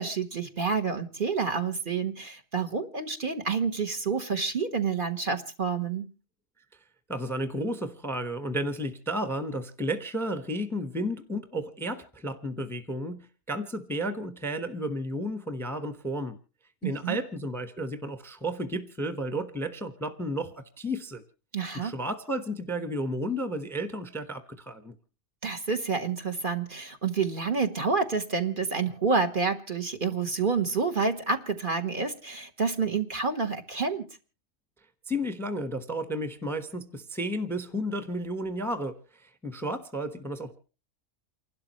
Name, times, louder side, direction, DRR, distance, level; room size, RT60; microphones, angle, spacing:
voice 1, 0.0-6.0 16.8-17.2 21.5-21.9 25.4-34.0, right 5 dB, 40° right, 1.4 m, -28 dB
voice 2, 7.1-16.4 16.8-21.2 21.7-24.9 35.1-40.6, equal, ahead, 1.0 m, -32 dB
29.0 x 12.0 x 3.0 m
omnidirectional pair, 1.3 m